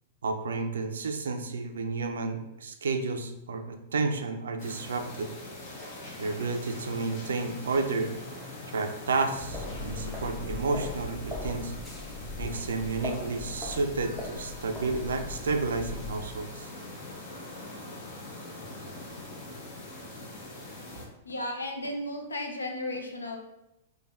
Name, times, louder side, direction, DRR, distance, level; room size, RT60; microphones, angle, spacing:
voice 1, 0.2-5.3 6.2-8.1 8.7-11.7 12.4-16.7, right 3 dB, 80° right, 7 dB, 0.3 m, -31 dB
sound 1, 4.6-21.1, left 2 dB, 55° left, 0.8 m, -43 dB
sound 2, 9.3-16.3, left 2 dB, 15° left, 0.6 m, -39 dB
voice 2, 21.3-23.4, left 1 dB, 90° left, 3 dB, 0.4 m, -34 dB
3.2 x 2.2 x 2.4 m, 0.91 s
hypercardioid pair, 110°, 0 cm